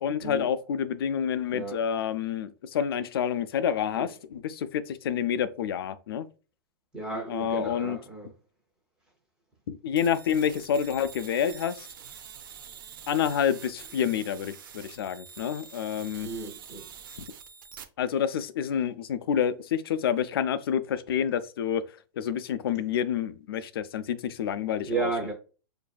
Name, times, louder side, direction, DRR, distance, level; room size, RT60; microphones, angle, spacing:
voice 1, 0.0-6.3 7.3-8.0 9.7-11.9 13.1-16.3 17.2-17.3 18.0-21.8 22.2-25.1, left 8 dB, 85° left, 0.4 m, -28 dB
voice 2, 1.5-1.9 4.0-4.1 6.9-8.3 16.2-16.9 24.9-25.3, right 3 dB, 5° right, 0.4 m, -33 dB
sound 1, 10.0-17.8, right 7 dB, 60° right, 0.5 m, -46 dB
4.7 x 2.6 x 2.2 m
supercardioid pair, 175°, 12 cm